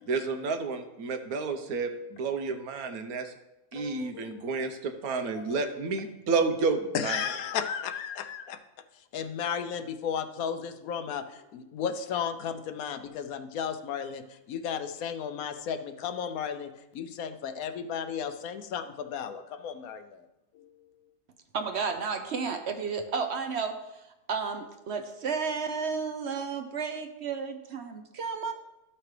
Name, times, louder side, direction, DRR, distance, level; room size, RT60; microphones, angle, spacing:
voice 1, 0.1-3.3 3.7-7.2, right 4 dB, 80° right, 6 dB, 1.3 m, -30 dB
voice 2, 3.7-4.7 5.3-5.6 6.9-8.6 9.1-20.2 20.5-20.7, left 7 dB, 75° left, 9 dB, 1.1 m, -34 dB
voice 3, 21.5-23.8 24.3-28.5, right 5 dB, 55° right, 7 dB, 0.8 m, -32 dB
13.0 x 5.8 x 3.2 m, 0.97 s
omnidirectional pair, 1.5 m